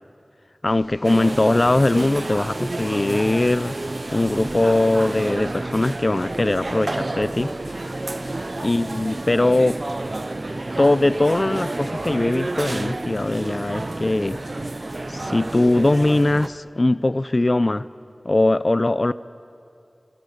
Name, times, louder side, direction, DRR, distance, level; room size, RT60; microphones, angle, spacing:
sound 1, 0.6-16.3, left 1 dB, 90° left, 7.2 m, -46 dB
voice 1, 0.6-3.8 4.1-7.5 8.6-9.8 10.8-14.4 15.1-17.9 18.2-19.1, left 2 dB, 45° left, 15 dB, 0.6 m, -20 dB
sound 2, 1.0-16.5, right 2 dB, 55° right, 0.6 m, -30 dB
27.5 x 25.0 x 8.1 m, 2.6 s
wide cardioid pair, 45°, 0 cm